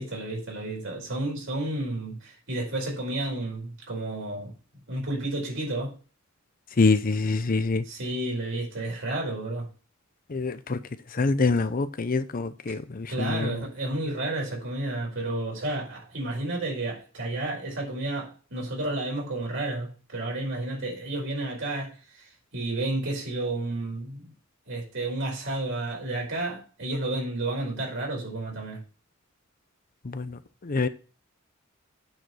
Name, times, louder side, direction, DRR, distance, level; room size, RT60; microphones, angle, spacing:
voice 1, 0.0-4.5 4.9-5.9 7.9-9.7 12.7-12.8 13.1-24.3 24.7-28.8, right 2 dB, 65° right, 4.9 m, -31 dB
voice 2, 6.8-7.8 10.3-10.8 11.1-13.6 30.0-30.9, left 3 dB, 45° left, 0.6 m, -25 dB
8.9 x 5.2 x 6.1 m
head